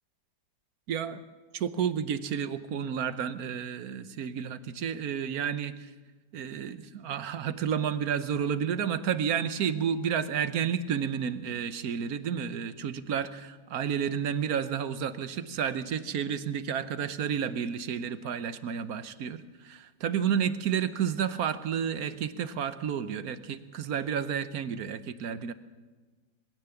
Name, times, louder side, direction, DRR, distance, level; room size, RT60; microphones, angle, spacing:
voice 1, 0.9-1.2 1.5-5.9 6.3-25.5, right 8 dB, 60° right, 13 dB, 1.2 m, -31 dB
22.0 x 16.5 x 7.1 m, 1.3 s
omnidirectional pair, 2.1 m